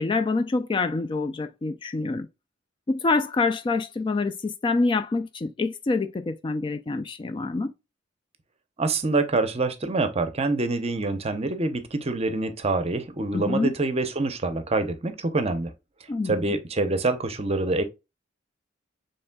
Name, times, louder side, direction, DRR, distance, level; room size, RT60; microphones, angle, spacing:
voice 1, 0.0-2.3 2.9-7.7 13.3-13.7 16.1-16.5, left 3 dB, 25° left, 0.3 m, -26 dB
voice 2, 8.8-15.7 16.2-17.8, right 3 dB, 30° right, 0.7 m, -26 dB
7.0 x 3.2 x 2.2 m
head